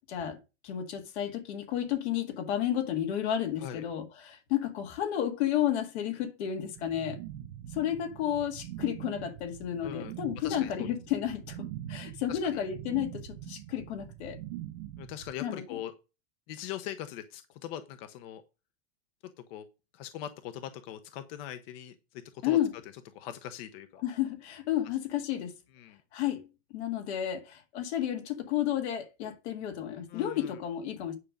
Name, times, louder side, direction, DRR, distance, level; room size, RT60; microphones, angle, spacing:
voice 1, 0.1-0.4 0.6-7.2 7.7-11.6 11.9-14.4 15.4-15.8 22.4-22.7 24.0-25.5 26.1-26.4 26.7-31.1, left 11 dB, 80° left, 2.0 m, -32 dB
sound 1, 6.8-15.3, right 12 dB, 75° right, 0.9 m, -43 dB
voice 2, 9.8-10.1 10.4-10.7 12.3-12.6 15.0-15.9 16.5-18.4 19.5-19.6 19.9-21.9 22.4-22.6 23.1-24.0 25.7-26.0 30.1-30.6, left 11 dB, 60° left, 1.0 m, -41 dB
9.8 x 5.3 x 5.0 m
supercardioid pair, 160°, 32 cm